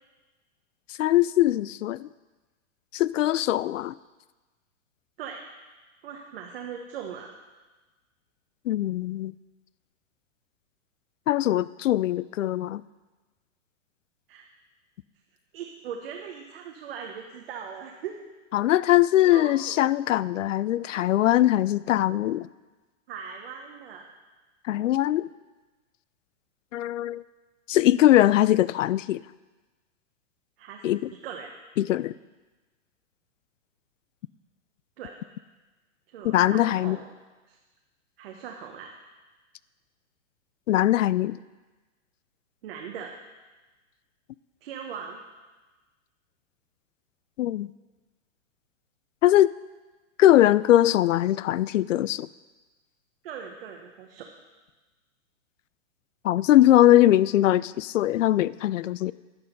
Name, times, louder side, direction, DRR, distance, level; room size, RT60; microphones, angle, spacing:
voice 1, 1.0-2.1 2.9-3.9 8.7-9.3 11.3-12.8 18.5-22.5 24.7-25.3 26.7-27.2 27.7-29.2 30.8-31.0 31.8-32.1 36.2-37.0 40.7-41.4 47.4-47.7 49.2-49.5 50.2-52.3 56.2-59.1, left 13 dB, 75° left, 19 dB, 0.5 m, -21 dB
voice 2, 6.0-7.3 14.3-14.5 15.5-18.2 19.2-19.9 23.1-24.0 30.6-30.9 31.2-31.5 35.0-35.2 36.1-37.1 37.5-37.6 38.2-39.0 42.6-43.1 44.6-45.2 53.2-54.3, right 7 dB, 50° right, 1 dB, 1.3 m, -39 dB
11.5 x 10.5 x 5.3 m, 1.2 s
hypercardioid pair, 165°, 38 cm